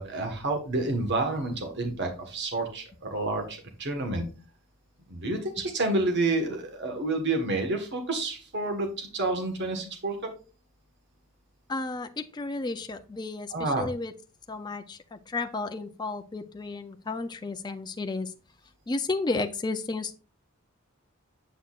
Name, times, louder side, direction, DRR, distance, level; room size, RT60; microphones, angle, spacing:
voice 1, 0.0-4.2 5.1-10.2 13.5-13.9, right 2 dB, 55° right, 4 dB, 1.4 m, -29 dB
voice 2, 11.7-14.1 14.5-18.3 18.9-20.2, left 3 dB, 20° left, 6 dB, 0.4 m, -33 dB
8.1 x 6.3 x 2.4 m, 0.35 s
head